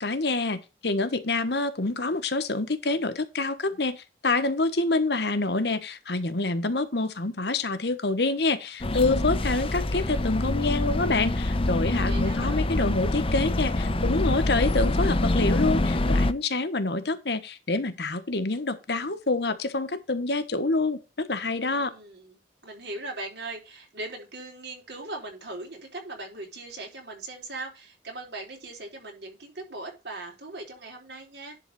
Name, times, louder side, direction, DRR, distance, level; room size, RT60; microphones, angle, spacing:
voice 1, 0.0-21.9, left 3 dB, 65° left, 1.2 m, -27 dB
sound 1, 8.8-16.3, left 1 dB, 30° left, 0.7 m, -25 dB
voice 2, 12.0-12.6 21.6-31.6, right 2 dB, 70° right, 3.7 m, -39 dB
11.0 x 3.9 x 5.4 m
head